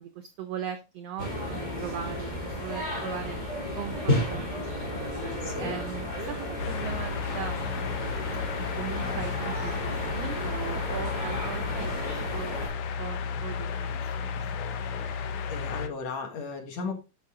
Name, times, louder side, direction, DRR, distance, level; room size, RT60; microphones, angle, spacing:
voice 1, 0.0-3.4 3.8-5.1 5.6-7.6 8.8-12.7 13.0-13.7 14.0-14.7, right 9 dB, 80° right, 9 dB, 1.4 m, -39 dB
sound 1, 1.2-12.7, left 1 dB, 15° left, 2.8 m, -33 dB
voice 2, 5.4-5.8 15.5-16.9, left 4 dB, 55° left, 4 dB, 2.7 m, -35 dB
sound 2, 6.6-15.9, left 6 dB, 80° left, 1.3 m, -33 dB
11.0 x 5.4 x 3.7 m, 0.29 s
omnidirectional pair, 3.9 m